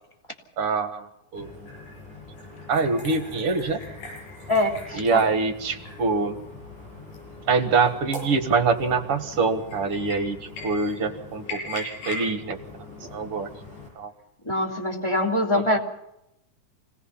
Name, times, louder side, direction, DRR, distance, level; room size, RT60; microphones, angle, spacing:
voice 1, 0.6-1.5 2.7-3.8 5.0-6.4 7.5-10.4 10.6-12.6 13.1-13.5 14.0-14.1 15.5-15.8, right 4 dB, 50° right, 7 dB, 2.1 m, -24 dB
sound 1, 1.3-13.9, left 2 dB, 65° left, 9.8 m, -40 dB
voice 2, 4.5-5.2 14.4-15.8, left 1 dB, 10° left, 1 dB, 2.6 m, -24 dB
26.5 x 19.0 x 5.8 m, 0.86 s
omnidirectional pair, 3.8 m